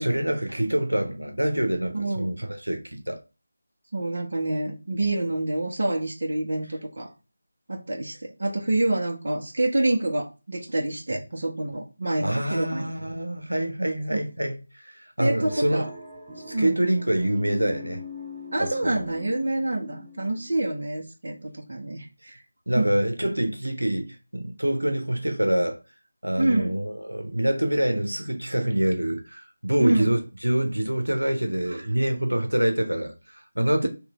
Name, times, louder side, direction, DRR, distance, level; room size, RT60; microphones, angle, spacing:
voice 1, 0.0-3.2 12.2-15.9 16.5-18.0 18.6-19.1 22.7-25.8 26.2-33.9, right 1 dB, 85° right, 0.9 m, -26 dB
voice 2, 1.9-2.3 3.9-7.1 7.7-12.9 14.1-14.2 15.2-15.9 16.5-16.8 18.5-22.4 22.8-22.9 26.4-26.8 29.8-30.1 31.6-31.9, right 2 dB, 55° right, 0.8 m, -27 dB
sound 1, 15.4-20.8, left 3 dB, 15° right, 1.3 m, -42 dB
3.2 x 3.0 x 3.5 m
figure-of-eight pair, 165°, 0 cm